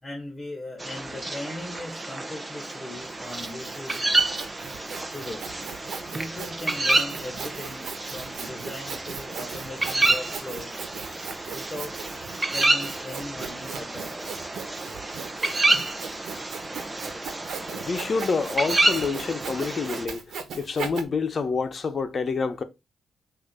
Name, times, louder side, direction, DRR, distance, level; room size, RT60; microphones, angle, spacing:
voice 1, 0.0-4.0 5.1-5.5 6.1-10.7 11.5-11.9 12.5-14.2, left 1 dB, 20° left, 2.0 m, -38 dB
sound 1, 0.8-20.1, right 2 dB, 20° right, 1.0 m, -29 dB
Sawing, 3.0-21.0, right 6 dB, 75° right, 1.2 m, -39 dB
voice 2, 17.7-22.6, left 4 dB, 45° left, 1.1 m, -28 dB
6.3 x 2.9 x 5.7 m
cardioid pair, 70°, 0 cm